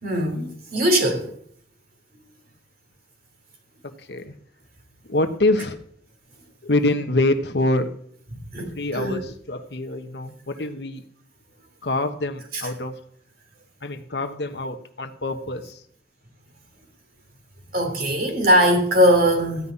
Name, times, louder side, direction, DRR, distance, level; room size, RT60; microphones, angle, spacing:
voice 1, 0.0-1.3 8.5-9.2 17.7-19.7, equal, 55° right, 3.4 m, -20 dB
voice 2, 3.8-4.4 5.1-5.8 6.6-7.9 8.7-11.0 11.8-13.0 13.8-15.8, left 2 dB, 75° left, 1.2 m, -25 dB
15.0 x 5.6 x 9.7 m
head